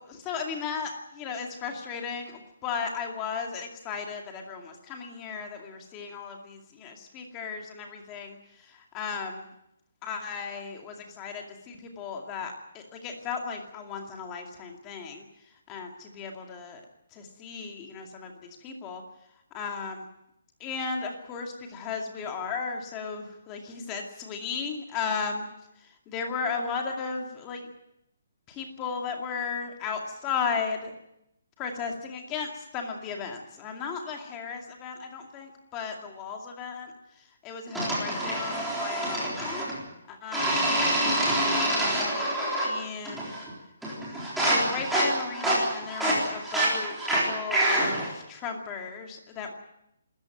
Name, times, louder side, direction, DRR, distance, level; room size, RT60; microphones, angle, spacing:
voice 1, 0.0-9.5 10.0-15.3 15.7-16.8 17.1-19.0 19.5-20.1 20.6-25.5 26.1-27.7 28.5-30.9 31.6-36.9 37.4-39.7 40.1-40.6 41.1-42.4 42.6-43.3 44.4-49.5, left 5 dB, 15° left, 3 dB, 2.3 m, -35 dB
sound 1, 37.7-39.8 40.3-42.8 43.0-43.5 43.8-48.1, right 1 dB, ahead, 3.9 m, -26 dB
25.5 x 14.0 x 9.1 m, 0.82 s
hypercardioid pair, 175°, 0 cm